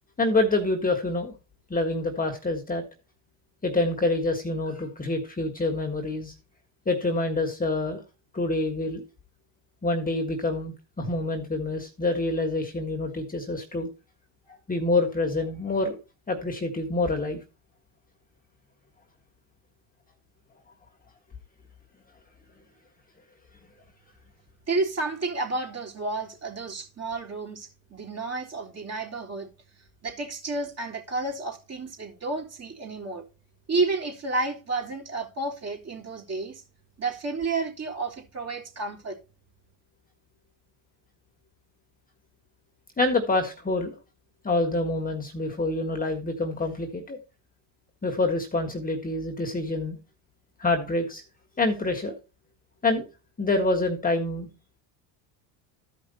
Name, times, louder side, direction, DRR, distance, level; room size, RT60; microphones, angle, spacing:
voice 1, 0.2-1.3 1.7-2.8 3.6-6.3 6.8-8.0 8.3-9.0 9.8-13.9 14.7-15.9 16.3-17.4 43.0-43.9 44.4-47.2 48.0-50.0 50.6-51.2 51.6-52.1 52.8-53.1 53.4-54.5, left 2 dB, 15° left, 1.6 m, -26 dB
voice 2, 24.7-29.5 30.0-33.3 33.7-36.6 37.0-39.2, right 3 dB, 30° right, 3.4 m, -31 dB
13.5 x 5.1 x 4.2 m
supercardioid pair, 100°, 49 cm